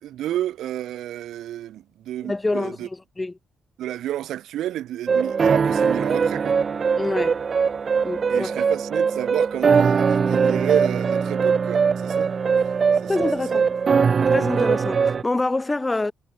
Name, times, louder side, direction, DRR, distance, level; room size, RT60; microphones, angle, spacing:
voice 1, 0.0-2.9 3.8-6.6 8.3-12.3 13.0-13.6, right 12 dB, 80° right, 3.5 m, -30 dB
voice 2, 2.2-3.3 7.0-7.4 8.0-8.6 13.1-13.7 14.3-16.1, left 2 dB, 20° left, 1.4 m, -26 dB
sound 1, 5.1-15.2, right 6 dB, 40° right, 1.4 m, -21 dB
cardioid pair, 90°, 0 cm